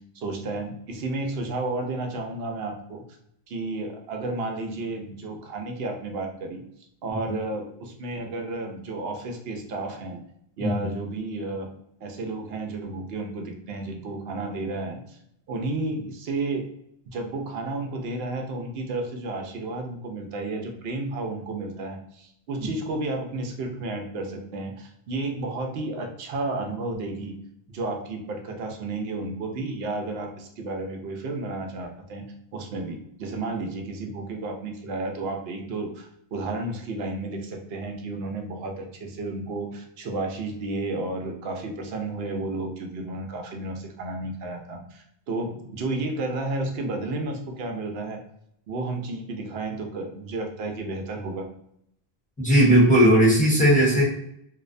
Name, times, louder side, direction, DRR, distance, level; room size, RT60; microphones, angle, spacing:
voice 1, 0.1-3.0 3.5-6.6 7.0-10.2 10.6-11.7 12.0-15.2 15.5-16.7 17.1-27.4 27.7-48.2 48.7-51.5, right 2 dB, 75° right, 3 dB, 0.8 m, -32 dB
voice 2, 52.4-54.0, right 1 dB, 10° left, -5 dB, 0.7 m, -17 dB
2.6 x 2.0 x 2.5 m, 0.73 s
omnidirectional pair, 1.1 m